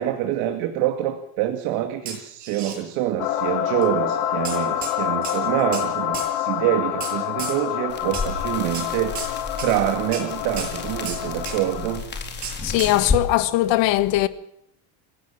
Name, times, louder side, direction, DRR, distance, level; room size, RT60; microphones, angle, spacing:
voice 1, 0.0-12.0, right 12 dB, 65° right, 2.4 m, -26 dB
sound 1, 2.1-2.8 3.8-3.9 4.5-4.9 5.2-5.9 6.1-6.3 7.0-7.6 8.1-8.3 8.7-8.9 9.2-9.3 9.6-9.8 10.1-10.3 10.6-10.7 11.1-11.6 12.4-13.0, right 6 dB, 35° right, 6.9 m, -33 dB
sound 2, 3.2-12.0, left 12 dB, 80° left, 2.7 m, -27 dB
sound 3, 7.9-13.2, left 4 dB, 20° left, 4.0 m, -31 dB
voice 2, 12.6-14.3, left 16 dB, 60° left, 1.5 m, -20 dB
27.5 x 16.5 x 7.4 m
cardioid pair, 155°, 49 cm